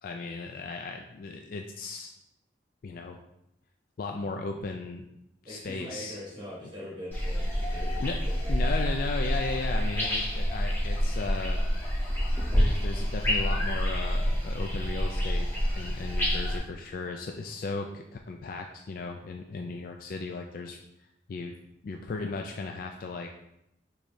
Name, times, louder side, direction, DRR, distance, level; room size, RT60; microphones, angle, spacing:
voice 1, 0.0-2.1 2.8-3.2 4.0-5.1 5.4-6.2 8.0-8.2 8.5-11.6 12.5-15.5 15.7-20.8 21.3-21.5 21.8-23.3, left 3 dB, 50° left, 3 dB, 0.3 m, -36 dB
voice 2, 5.4-8.5, equal, 25° right, -6 dB, 1.0 m, -42 dB
sound 1, 7.1-16.6, equal, 10° left, 1.7 m, -28 dB
6.4 x 3.1 x 2.6 m, 0.83 s
head